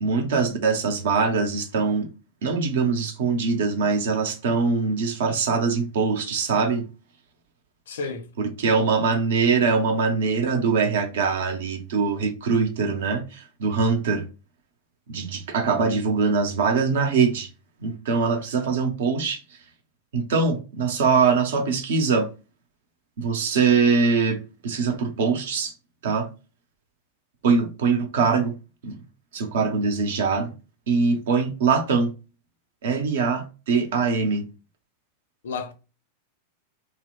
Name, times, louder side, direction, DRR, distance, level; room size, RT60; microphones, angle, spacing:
voice 1, 0.0-2.1 2.4-6.9 8.4-14.3 15.1-17.5 17.8-19.4 20.1-22.3 23.2-25.7 26.0-26.3 27.4-28.5 28.8-29.0 29.3-30.5 30.9-32.1 32.8-34.5, right 5 dB, 60° right, 0.5 m, -23 dB
voice 2, 7.9-8.3 35.4-35.7, left 4 dB, 60° left, 0.4 m, -31 dB
2.8 x 2.0 x 2.3 m
figure-of-eight pair, 90°, 0 cm